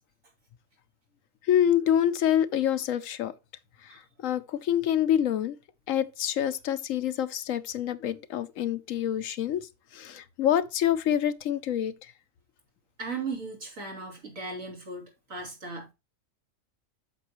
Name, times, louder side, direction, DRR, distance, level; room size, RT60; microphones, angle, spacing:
voice 1, 1.5-3.3 3.8-5.6 5.9-11.9, left 10 dB, 80° left, 1.1 m, -26 dB
voice 2, 13.0-15.9, right 4 dB, 85° right, 3.5 m, -37 dB
8.1 x 6.9 x 3.0 m
omnidirectional pair, 1.4 m